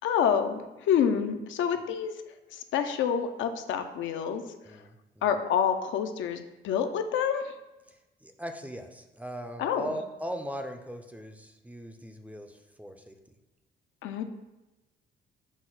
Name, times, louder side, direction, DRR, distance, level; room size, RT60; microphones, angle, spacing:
voice 1, 0.0-2.1 2.5-4.4 5.2-7.5 9.6-9.9 14.0-14.2, left 8 dB, 75° left, 7 dB, 0.4 m, -27 dB
voice 2, 4.6-5.2 7.9-13.2, equal, 5° right, 5 dB, 0.4 m, -39 dB
6.0 x 2.1 x 3.8 m, 1.1 s
cardioid pair, 90°, 20 cm